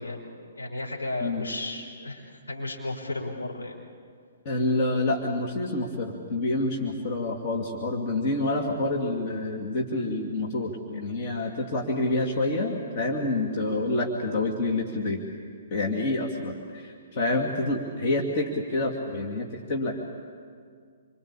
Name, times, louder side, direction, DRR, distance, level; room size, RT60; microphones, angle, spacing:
voice 1, 0.0-3.8 17.1-17.4, left 2 dB, 75° left, 0 dB, 5.2 m, -34 dB
voice 2, 4.4-15.2 15.7-20.0, left 2 dB, 35° left, 0 dB, 2.8 m, -28 dB
27.0 x 25.0 x 8.7 m, 2.1 s
figure-of-eight pair, 120°, 0 cm